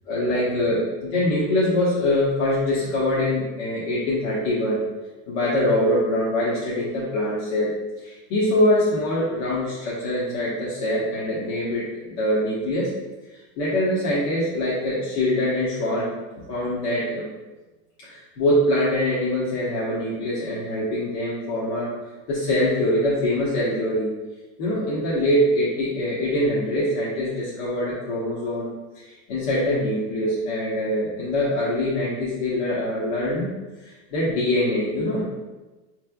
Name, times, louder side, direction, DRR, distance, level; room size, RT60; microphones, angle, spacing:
voice 1, 0.1-4.8 5.3-12.9 13.3-16.1 16.5-17.3 18.0-21.9 22.3-24.1 24.6-28.7 28.9-35.5, left 1 dB, 70° left, -8 dB, 1.1 m, -24 dB
4.7 x 3.2 x 2.3 m, 1.2 s
cardioid pair, 145°, 32 cm